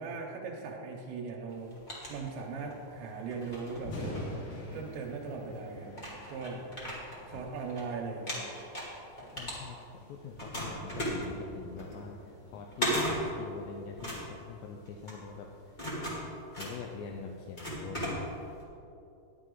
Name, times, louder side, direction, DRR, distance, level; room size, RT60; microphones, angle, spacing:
voice 1, 0.0-1.8 2.1-4.0 4.7-6.0 6.3-6.7 7.3-8.4, right 4 dB, 85° right, -1 dB, 3.2 m, -39 dB
sound 1, 1.5-2.8 3.3-4.9 5.5-5.6 5.9-7.8 8.1-10.0 10.3-18.6, equal, 35° left, 0.7 m, -37 dB
Thunder, 3.8-17.8, left 1 dB, 65° left, 4.4 m, -48 dB
voice 2, 9.3-15.8 16.6-18.3, left 5 dB, 85° left, 2 dB, 2.8 m, -44 dB
11.0 x 10.5 x 3.8 m, 2.8 s
omnidirectional pair, 5.1 m